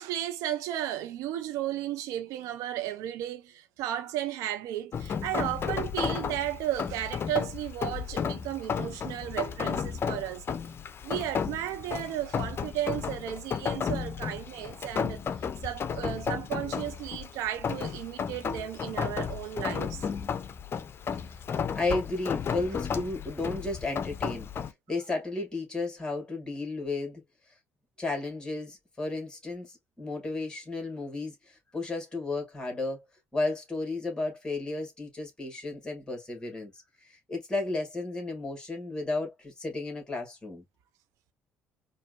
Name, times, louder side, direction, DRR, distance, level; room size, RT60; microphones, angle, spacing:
voice 1, 0.0-10.4 11.0-15.2 15.6-20.1, right 12 dB, 75° right, 0.6 m, -34 dB
Rain, 4.9-24.7, left 7 dB, 45° left, 0.6 m, -33 dB
voice 2, 21.7-24.5 24.9-27.2 28.0-33.0 33.3-40.6, left 2 dB, 15° left, 2.1 m, -33 dB
4.6 x 2.5 x 2.4 m
hypercardioid pair, 60°, 6 cm